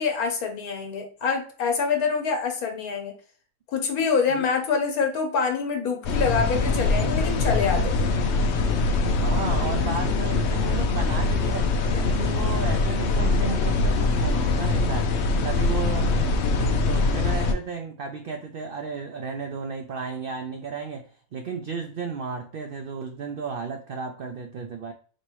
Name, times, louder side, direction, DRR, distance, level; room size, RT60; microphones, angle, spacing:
voice 1, 0.0-3.1 3.7-7.9, left 5 dB, 80° left, 4 dB, 1.5 m, -26 dB
sound 1, 6.0-17.5, left 3 dB, 65° left, 0.7 m, -23 dB
voice 2, 9.1-24.9, right 5 dB, 85° right, 5 dB, 0.4 m, -34 dB
4.2 x 3.2 x 3.0 m, 0.42 s
omnidirectional pair, 1.5 m